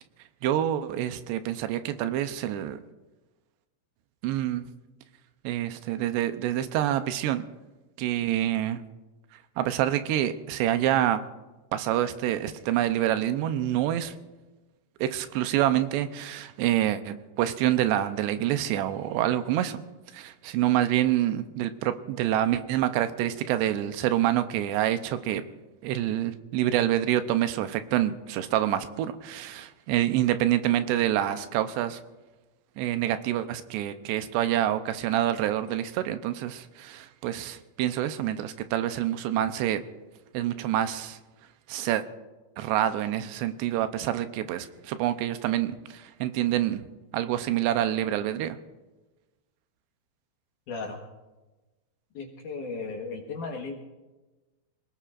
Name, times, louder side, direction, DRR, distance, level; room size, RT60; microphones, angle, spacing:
voice 1, 0.4-2.8 4.2-4.7 5.4-7.4 8.0-8.8 9.6-11.2 11.7-14.1 15.0-19.8 20.1-25.4 25.8-32.0 32.8-39.8 40.3-41.2 41.7-42.0 42.6-46.9 47.1-48.6, right 12 dB, 85° right, 10 dB, 2.9 m, -27 dB
voice 2, 50.7-51.0 52.1-53.7, left 4 dB, 60° left, 0 dB, 2.4 m, -35 dB
26.0 x 18.0 x 2.5 m, 1.2 s
omnidirectional pair, 4.9 m